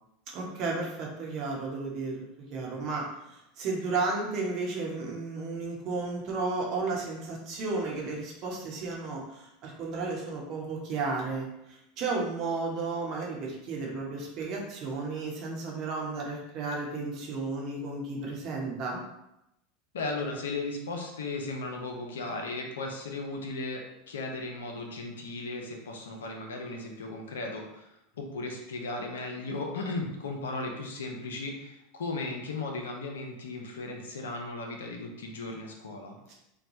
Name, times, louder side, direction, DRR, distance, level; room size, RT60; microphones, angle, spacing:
voice 1, 0.3-2.2 2.5-19.0 36.3-36.4, right 3 dB, 50° right, -1 dB, 0.9 m, -33 dB
voice 2, 19.9-27.9 28.2-36.3, left 3 dB, 75° left, 2 dB, 0.5 m, -36 dB
3.1 x 2.2 x 2.7 m, 0.85 s
hypercardioid pair, 85°, 0 cm